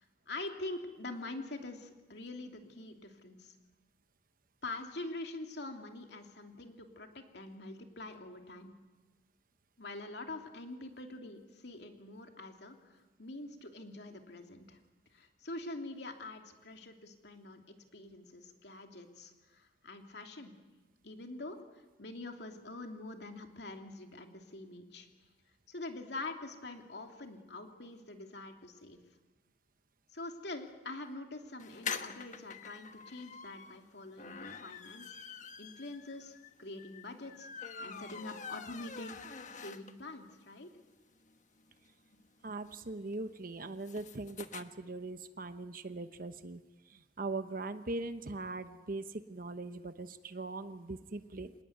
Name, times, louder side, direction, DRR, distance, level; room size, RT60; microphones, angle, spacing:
voice 1, 0.0-3.5 4.6-8.7 9.8-14.8 15.1-20.5 21.0-25.1 25.7-29.0 30.1-35.2 35.6-39.2 39.5-40.7, left 2 dB, 65° left, 4 dB, 2.9 m, -45 dB
sound 1, 31.6-40.2 40.6-40.7 40.9-41.0 41.2-44.6, left 6 dB, 45° left, 1.3 m, -46 dB
voice 2, 42.4-51.5, right 2 dB, 50° right, 10 dB, 1.0 m, -41 dB
26.5 x 19.5 x 9.5 m, 1.2 s
head